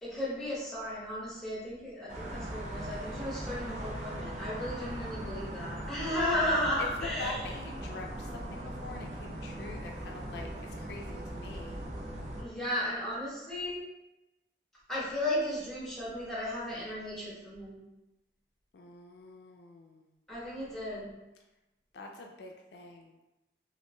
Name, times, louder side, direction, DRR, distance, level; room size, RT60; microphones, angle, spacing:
voice 1, 0.0-7.4 12.4-13.8 14.9-17.8 20.3-21.2, left 1 dB, ahead, -8 dB, 1.1 m, -34 dB
sound 1, 2.1-12.4, right 1 dB, 40° right, 0.5 m, -40 dB
voice 2, 7.2-11.8 18.7-20.1 21.9-23.2, left 3 dB, 70° left, 1 dB, 0.4 m, -45 dB
3.0 x 2.5 x 3.2 m, 0.99 s
head